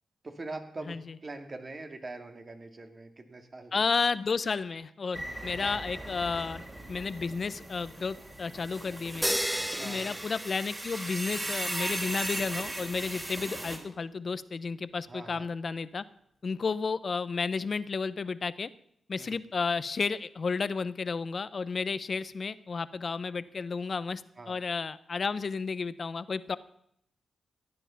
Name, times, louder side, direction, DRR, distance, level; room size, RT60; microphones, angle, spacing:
voice 1, 0.2-3.8 5.6-5.8 9.8-10.2 15.1-15.5 19.2-19.4 24.4-24.6, right 2 dB, 45° right, 5 dB, 2.2 m, -43 dB
voice 2, 3.7-6.6 6.9-9.4 9.8-16.0 16.4-18.7 19.1-24.2 24.5-26.6, left 4 dB, 55° left, 16 dB, 0.7 m, -32 dB
sound 1, 5.1-13.8, right 1 dB, 25° right, 3.5 m, -38 dB
sound 2, 9.2-11.4, equal, 5° right, 0.5 m, -33 dB
15.0 x 9.8 x 5.7 m, 0.73 s
cardioid pair, 55°, 0 cm